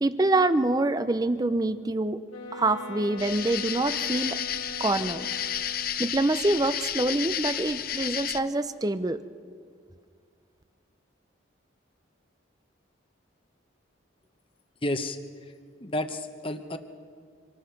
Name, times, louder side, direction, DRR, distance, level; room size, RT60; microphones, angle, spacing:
voice 1, 0.0-2.2 2.5-4.4 4.8-5.3 6.0-9.2, right 2 dB, 20° right, 12 dB, 0.5 m, -25 dB
sound 1, 2.3-6.2, left 1 dB, 90° left, 2.7 m, -41 dB
sound 2, 3.2-8.4, left 10 dB, 45° left, 0.6 m, -32 dB
voice 2, 14.8-15.2 15.8-16.8, left 1 dB, 25° left, 7 dB, 1.0 m, -30 dB
26.5 x 18.5 x 5.8 m, 2.1 s
head